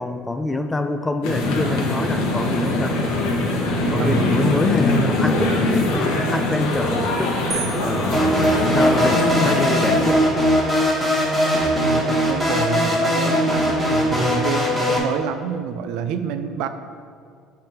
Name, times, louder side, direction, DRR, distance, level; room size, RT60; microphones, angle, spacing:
voice 1, 0.0-3.0 3.9-10.2, left 2 dB, 10° left, 7 dB, 0.3 m, -26 dB
sound 1, 1.2-10.1, left 2 dB, 85° left, 1.1 m, -22 dB
voice 2, 4.0-4.5 11.7-16.7, right 8 dB, 70° right, 9 dB, 0.4 m, -28 dB
sound 2, 7.5-9.3, right 6 dB, 45° right, 0.9 m, -35 dB
sound 3, 8.1-15.0, equal, 10° right, 1.1 m, -20 dB
7.7 x 3.4 x 4.3 m, 2.2 s
cardioid pair, 140°, 0 cm